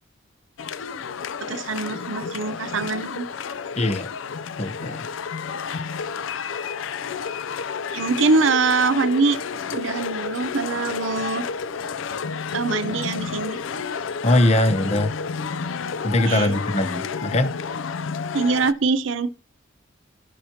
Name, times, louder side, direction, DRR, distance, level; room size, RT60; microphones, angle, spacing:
sound 1, 0.6-18.7, left 5 dB, 80° left, 0.5 m, -31 dB
voice 1, 1.4-3.3 7.9-9.4 9.7-11.5 12.5-13.6 16.2-16.5 18.3-19.3, right 4 dB, 80° right, 0.7 m, -23 dB
voice 2, 3.8-4.1 4.6-5.1 14.2-15.1 16.0-17.5, left 1 dB, 35° left, 0.8 m, -21 dB
15.5 x 5.7 x 2.9 m
head